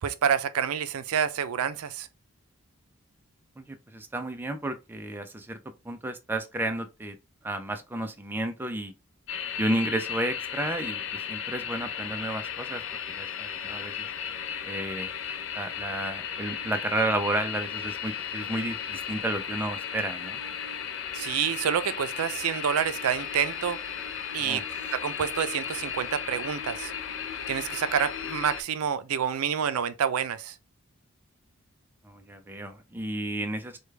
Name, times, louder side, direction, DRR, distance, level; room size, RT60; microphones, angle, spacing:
voice 1, 0.0-2.1 21.1-23.8 24.3-24.6 24.9-26.9 27.5-30.5, right 8 dB, 85° right, 0.4 m, -28 dB
voice 2, 3.6-5.6 5.8-7.2 7.4-8.9 9.6-14.1 14.6-15.1 15.5-20.4 24.4-24.6 32.0-33.8, right 1 dB, 10° right, 0.4 m, -32 dB
sound 1, 9.3-28.6, left 8 dB, 60° left, 0.5 m, -35 dB
4.9 x 2.3 x 3.2 m
head